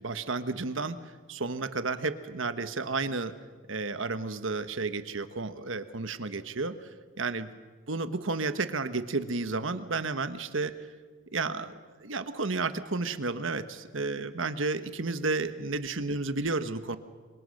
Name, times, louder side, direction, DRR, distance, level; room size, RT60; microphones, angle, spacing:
voice 1, 0.0-3.3 3.7-6.9 7.2-7.6 7.9-10.8 11.3-17.0, right 3 dB, 75° right, 11 dB, 1.3 m, -32 dB
27.5 x 24.5 x 6.6 m, 1.5 s
head